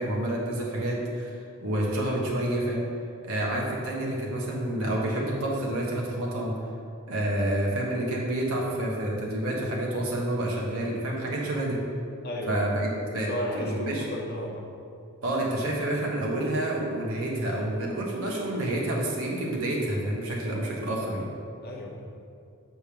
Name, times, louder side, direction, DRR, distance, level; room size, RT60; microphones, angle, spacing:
voice 1, 0.0-2.9 3.2-6.5 7.1-11.8 12.5-13.3 13.5-14.1 15.2-21.3, right 1 dB, 75° right, -3 dB, 1.1 m, -28 dB
voice 2, 12.2-12.7 13.2-14.7 21.6-22.1, left 1 dB, 45° left, 1 dB, 0.8 m, -34 dB
6.7 x 3.5 x 5.8 m, 2.5 s
head